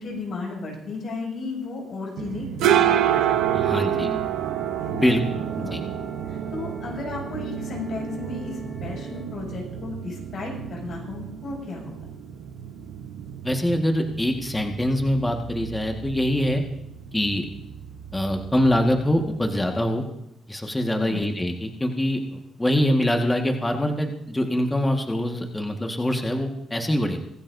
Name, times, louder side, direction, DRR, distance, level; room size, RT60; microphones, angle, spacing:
voice 1, 0.0-4.1 4.4-5.0 5.6-11.9 21.0-21.3, left 3 dB, 65° left, -1 dB, 6.9 m, -35 dB
sound 1, 2.2-19.7, right 10 dB, 90° right, 1.0 m, -29 dB
voice 2, 3.5-4.1 4.9-5.2 5.7-5.8 13.4-16.6 17.1-17.5 18.1-20.0 20.5-27.2, left 1 dB, 15° left, 3 dB, 1.6 m, -24 dB
sound 2, 4.2-9.2, left 2 dB, 35° left, 7.2 m, -44 dB
24.0 x 13.5 x 2.7 m, 0.83 s
cardioid pair, 80°, 0 cm